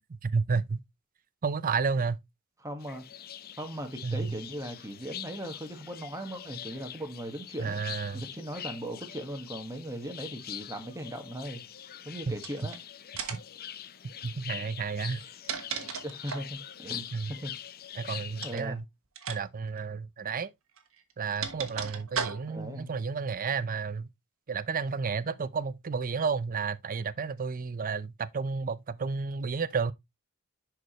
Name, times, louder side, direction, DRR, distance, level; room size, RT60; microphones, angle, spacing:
voice 1, 0.1-0.8 1.4-2.2 4.0-4.3 7.6-8.2 12.3-12.4 13.3-13.4 14.2-15.2 17.1-17.3 18.0-18.8 19.3-20.5 21.2-24.1 24.5-29.9, right 5 dB, 40° right, 0.5 m, -31 dB
voice 2, 2.6-3.0 3.6-7.8 8.1-11.6 12.0-12.8 16.0-17.5 18.4-18.8 22.5-22.9, right 1 dB, 15° right, 1.6 m, -38 dB
sound 1, 2.8-18.6, left 10 dB, 45° left, 0.6 m, -44 dB
sound 2, 12.4-12.8 13.2-13.6 15.1-16.6 18.4-18.7 19.2-19.4 19.7-19.8 20.8-22.7, right 6 dB, 65° right, 1.5 m, -36 dB
10.5 x 4.9 x 3.1 m
head